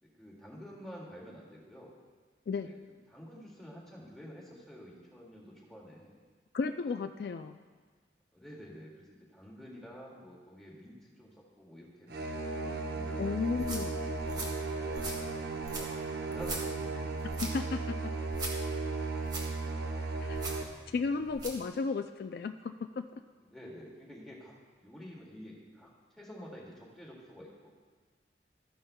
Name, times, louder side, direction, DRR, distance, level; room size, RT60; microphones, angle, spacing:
voice 1, 0.0-1.9 2.6-2.8 3.1-6.2 8.3-15.1 15.7-15.9 16.2-17.0 23.4-24.5 24.8-27.8, equal, ahead, -4 dB, 2.0 m, -50 dB
voice 2, 6.5-7.6 13.2-13.9 17.4-18.1 20.2-20.5 20.9-23.2, left 4 dB, 60° left, 8 dB, 0.3 m, -34 dB
sound 1, 12.1-20.6, right 3 dB, 60° right, 0.8 m, -35 dB
sound 2, 13.5-21.7, right 2 dB, 25° right, 1.6 m, -43 dB
14.0 x 11.0 x 2.2 m, 1.5 s
head